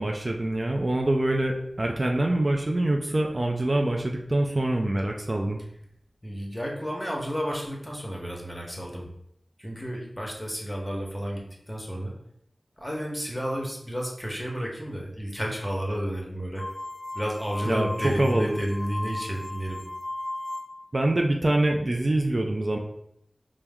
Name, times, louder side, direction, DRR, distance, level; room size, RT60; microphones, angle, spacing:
voice 1, 0.0-5.6 17.7-18.6 20.9-22.8, right 1 dB, 45° right, 1 dB, 0.4 m, -25 dB
voice 2, 6.2-9.1 9.6-12.1 12.8-16.6 17.1-19.8, equal, 10° left, -1 dB, 1.0 m, -31 dB
sound 1, 16.6-21.0, left 1 dB, 40° left, 0.4 m, -36 dB
4.4 x 2.1 x 3.5 m, 0.76 s
wide cardioid pair, 55°, 0 cm